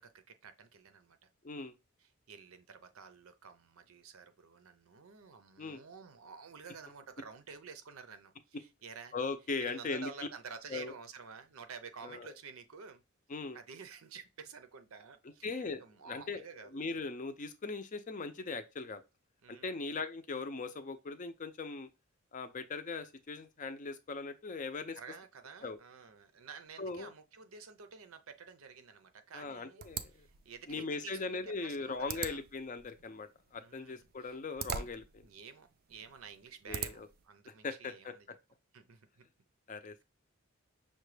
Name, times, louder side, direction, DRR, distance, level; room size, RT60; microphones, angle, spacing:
voice 1, 0.0-1.3 2.0-9.1 9.6-13.0 13.5-16.8 19.4-19.7 24.9-29.9 30.1-32.4 33.6-34.4 35.2-38.3 38.7-39.3, right 5 dB, 85° right, 0.6 m, -51 dB
voice 2, 9.1-10.1 10.7-10.9 12.0-12.3 13.3-13.6 15.4-19.0 19.5-21.9 22.3-25.0 25.6-25.8 26.8-27.1 29.3-30.3 30.7-35.2 36.7-37.1 37.5-38.1 39.7-40.0, left 4 dB, 35° left, 0.5 m, -40 dB
sound 1, 29.8-37.2, right 7 dB, 45° right, 0.3 m, -44 dB
5.8 x 2.2 x 3.2 m
head